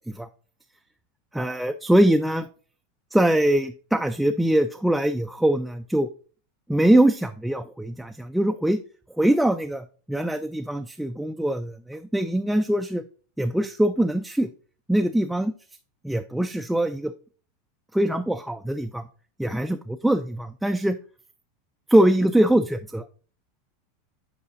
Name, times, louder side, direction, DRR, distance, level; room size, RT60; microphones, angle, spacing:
voice 1, 1.3-2.5 3.1-6.1 6.7-8.8 9.2-13.0 13.4-14.5 14.9-15.5 16.0-17.1 17.9-19.1 19.4-21.0 21.9-23.0, right 1 dB, ahead, 5 dB, 0.3 m, -22 dB
8.3 x 4.8 x 2.5 m, 0.40 s
supercardioid pair, 135°, 0 cm